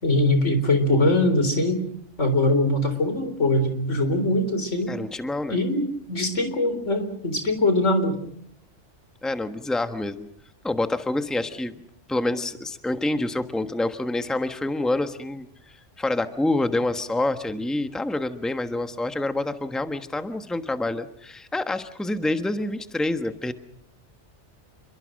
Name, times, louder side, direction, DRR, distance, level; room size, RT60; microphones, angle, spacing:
voice 1, 0.0-1.8 2.2-4.9 5.5-5.8 6.1-8.2, left 1 dB, 90° left, 8 dB, 4.5 m, -22 dB
voice 2, 4.9-5.6 9.2-10.3 10.6-11.7 12.1-23.5, left 2 dB, ahead, 8 dB, 1.2 m, -27 dB
28.5 x 23.0 x 6.5 m, 0.69 s
omnidirectional pair, 1.2 m